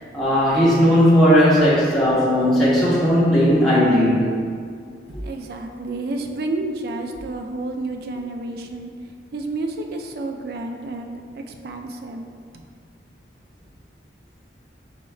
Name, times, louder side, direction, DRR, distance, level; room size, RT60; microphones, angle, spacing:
voice 1, 0.1-4.2, equal, ahead, -10 dB, 1.0 m, -16 dB
voice 2, 5.2-8.9 9.3-12.3, right 2 dB, 55° right, 4 dB, 0.3 m, -30 dB
4.4 x 4.1 x 2.3 m, 2.1 s
head